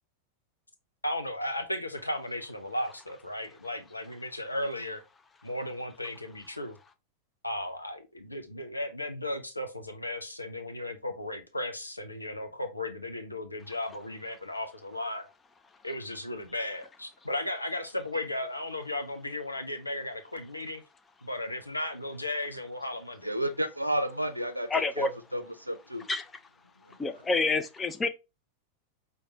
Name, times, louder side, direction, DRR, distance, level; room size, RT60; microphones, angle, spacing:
voice 1, 1.0-5.0 5.4-6.8 7.4-8.0 8.3-15.3 15.8-20.8 21.2-23.3, left 1 dB, 85° left, 0.5 m, -35 dB
voice 2, 23.2-24.7 25.0-26.1, equal, 85° right, 0.5 m, -31 dB
voice 3, 24.7-25.1 26.1-26.4 27.0-28.1, left 3 dB, 15° left, 0.4 m, -28 dB
4.6 x 2.2 x 2.8 m
figure-of-eight pair, 90°, 0 cm